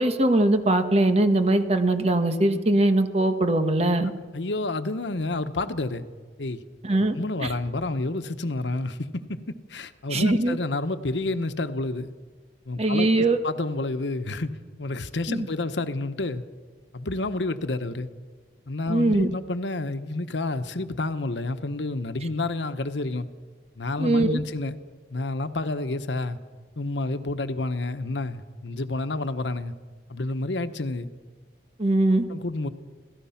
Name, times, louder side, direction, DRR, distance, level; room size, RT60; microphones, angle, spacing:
voice 1, 0.0-4.1 6.8-7.5 10.1-10.6 12.8-13.4 15.3-15.5 18.9-19.3 24.0-24.4 31.8-32.2, right 2 dB, 35° right, 7 dB, 1.4 m, -21 dB
voice 2, 4.3-6.0 6.4-6.6 7.2-12.1 12.6-14.5 14.8-16.4 16.9-18.1 18.7-23.3 23.8-24.8 25.1-26.4 26.8-29.7 30.1-31.1 32.3-32.7, left 2 dB, 90° left, 10 dB, 1.1 m, -29 dB
26.5 x 17.5 x 5.8 m, 1.5 s
head